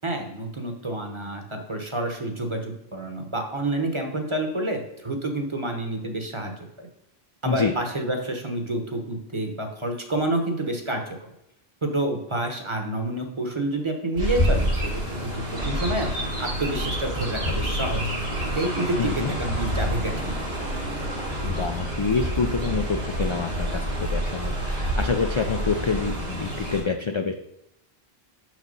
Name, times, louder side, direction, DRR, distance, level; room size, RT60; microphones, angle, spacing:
voice 1, 0.0-6.9 7.4-11.0 11.8-14.9 15.2-16.1 16.4-18.0 18.4-20.3, right 1 dB, 30° right, 3 dB, 1.1 m, -28 dB
Chirp tweet, 14.2-26.8, equal, 70° right, 2.2 m, -28 dB
voice 2, 19.0-19.3 21.4-27.3, left 5 dB, 45° left, 5 dB, 0.4 m, -27 dB
6.3 x 6.0 x 5.4 m, 0.83 s
omnidirectional pair, 1.0 m